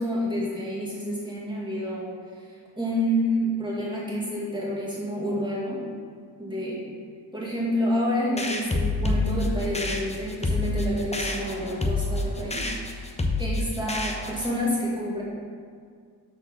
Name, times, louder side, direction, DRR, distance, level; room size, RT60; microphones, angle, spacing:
voice 1, 0.0-2.1 2.4-5.8 6.4-6.8 7.3-13.1 13.4-15.2, equal, 10° right, -7 dB, 1.9 m, -29 dB
sound 1, 8.4-14.6, left 2 dB, 15° left, 0.6 m, -28 dB
6.1 x 4.4 x 6.1 m, 2.1 s
wide cardioid pair, 120°, 43 cm